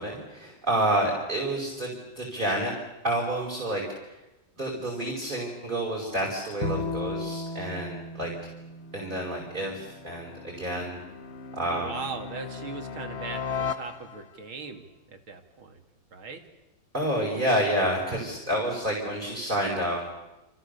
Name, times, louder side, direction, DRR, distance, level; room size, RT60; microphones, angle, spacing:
voice 1, 0.0-2.7 3.0-4.2 4.6-8.3 8.9-11.0 11.5-12.0 16.9-20.1, right 1 dB, 25° right, -1 dB, 5.2 m, -29 dB
Bowed string instrument, 6.6-9.9, left 2 dB, 85° left, 2.9 m, -35 dB
sound 1, 8.1-14.5, left 6 dB, 40° left, 1.1 m, -38 dB
voice 2, 11.7-15.8 16.1-16.4, right 4 dB, 90° right, 5 dB, 3.3 m, -39 dB
30.0 x 28.5 x 6.9 m, 1.0 s
omnidirectional pair, 2.2 m